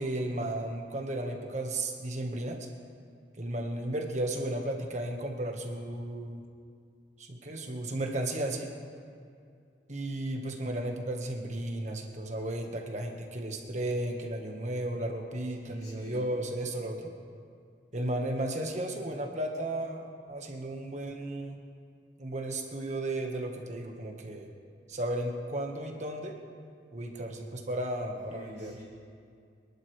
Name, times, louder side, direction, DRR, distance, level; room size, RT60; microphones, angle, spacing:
voice 1, 0.0-2.7 3.4-6.4 7.2-8.7 9.9-17.1 17.9-21.6 22.2-24.5 24.9-26.3 26.9-28.8, right 1 dB, 40° right, 2 dB, 1.5 m, -34 dB
voice 2, 15.6-16.3 28.3-28.8, equal, 40° left, -10 dB, 4.3 m, -47 dB
26.0 x 11.0 x 3.3 m, 2.3 s
head